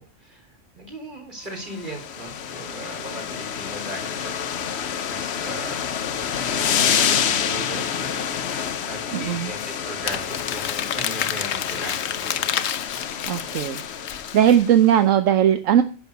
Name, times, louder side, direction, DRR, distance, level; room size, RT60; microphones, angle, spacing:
voice 1, 0.0-4.4 5.0-5.8 6.4-8.1 8.8-12.5, right 1 dB, 40° right, 2 dB, 4.1 m, -38 dB
sound 1, 1.6-14.9, left 8 dB, 60° left, 1.0 m, -28 dB
voice 2, 9.1-9.5 13.3-13.8 14.3-15.8, right 10 dB, 75° right, 10 dB, 1.2 m, -18 dB
Crumpling crinkling, 10.0-14.6, left 10 dB, 80° left, 1.1 m, -29 dB
10.5 x 7.1 x 6.8 m, 0.36 s
omnidirectional pair, 1.3 m